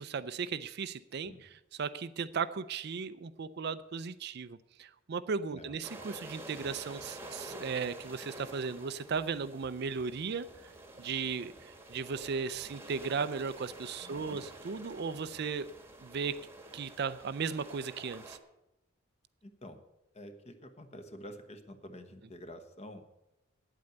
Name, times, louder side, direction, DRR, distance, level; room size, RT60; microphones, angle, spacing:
voice 1, 0.0-1.3 1.8-10.5 11.0-15.7 16.0-16.4 16.7-18.4, right 5 dB, 55° right, 14 dB, 0.4 m, -36 dB
sound 1, 5.8-18.4, right 1 dB, 10° right, 1.2 m, -49 dB
voice 2, 14.0-14.5 19.4-19.8 20.1-23.0, equal, 30° left, 8 dB, 1.1 m, -48 dB
9.2 x 8.6 x 7.9 m, 0.91 s
head